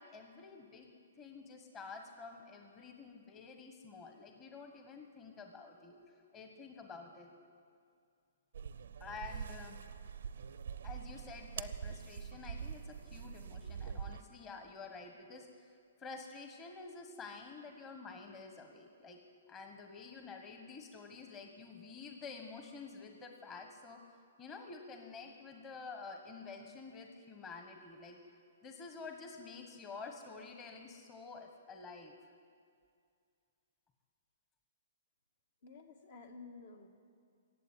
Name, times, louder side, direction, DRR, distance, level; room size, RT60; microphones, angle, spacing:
voice 1, 0.0-6.0 6.3-7.3 9.0-9.8 10.8-19.2 19.5-24.0 24.4-28.2 28.6-32.2, left 4 dB, 25° left, 4 dB, 1.3 m, -49 dB
sound 1, 8.5-14.2, right 7 dB, 75° right, 0.6 m, -44 dB
voice 2, 35.6-36.9, left 4 dB, 65° left, 5 dB, 1.8 m, -52 dB
15.0 x 8.3 x 9.8 m, 2.3 s
hypercardioid pair, 140°, 0 cm